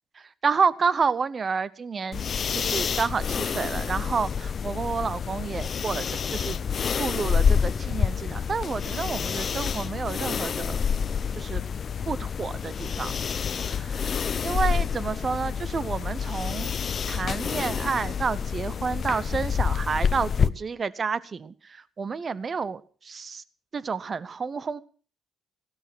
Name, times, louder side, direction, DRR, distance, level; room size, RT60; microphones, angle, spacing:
voice 1, 0.2-2.2 2.5-6.6 7.0-10.8 11.3-11.6 12.1-13.1 13.6-16.7 17.1-23.4 23.7-24.8, right 5 dB, 40° right, 19 dB, 0.8 m, -30 dB
Breathing nose calm, 2.1-20.5, left 6 dB, 50° left, 0.8 m, -28 dB
16.5 x 12.5 x 6.1 m, 0.42 s
cardioid pair, 90°, 0 cm